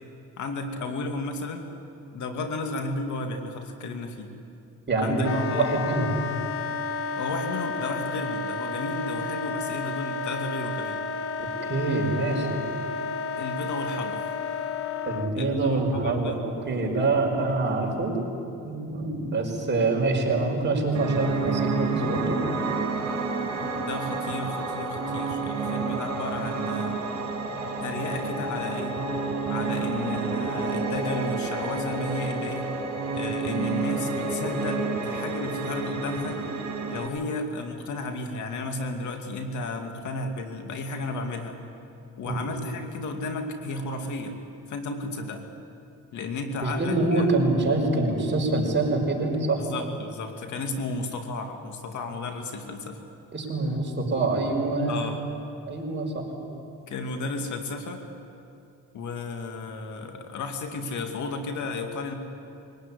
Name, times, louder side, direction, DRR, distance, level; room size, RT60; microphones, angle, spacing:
voice 1, 0.4-1.7 2.1-4.3 5.0-5.6 7.2-11.0 13.4-14.3 15.4-16.4 23.8-27.0 27.8-29.0 29.5-32.7 33.1-36.4 36.8-41.6 42.2-44.4 44.7-45.4 46.1-47.3 49.6-53.0 54.8-55.2 56.9-58.0 58.9-62.1, left 3 dB, 75° left, 5 dB, 2.5 m, -33 dB
voice 2, 4.9-6.1 11.4-12.6 15.1-18.1 18.6-22.4 42.2-42.4 46.6-49.7 53.3-55.1 55.7-56.2, right 2 dB, 35° right, 0 dB, 5.6 m, -25 dB
Wind instrument woodwind instrument, 5.2-15.3, left 4 dB, 50° left, 1.2 m, -32 dB
Piano, 20.9-37.1, right 4 dB, 60° right, 4.6 m, -29 dB
22.5 x 18.0 x 9.9 m, 2.6 s
cardioid pair, 90°, 30 cm